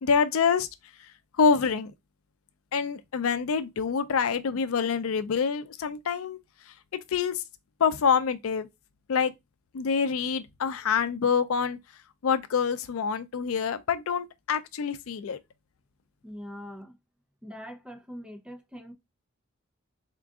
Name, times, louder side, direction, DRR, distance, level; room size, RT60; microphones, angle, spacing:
voice 1, 0.0-0.7 1.4-1.9 2.7-6.4 7.1-7.4 7.8-8.7 9.1-9.3 9.7-11.8 12.2-15.4, left 6 dB, 85° left, 0.4 m, -26 dB
voice 2, 16.2-17.0 17.4-18.9, equal, 5° right, 0.6 m, -42 dB
3.7 x 2.5 x 3.5 m
head